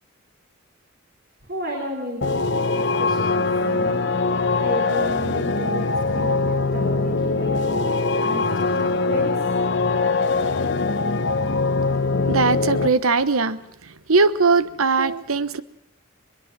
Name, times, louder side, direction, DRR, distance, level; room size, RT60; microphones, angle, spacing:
voice 1, 1.4-4.1 4.6-7.9 8.2-9.5, right 1 dB, 45° right, 3.9 m, -33 dB
sound 1, 2.2-12.9, left 3 dB, 55° left, 1.0 m, -22 dB
voice 2, 12.3-13.6 14.1-15.6, right 4 dB, 80° right, 1.1 m, -20 dB
22.0 x 22.0 x 6.1 m
head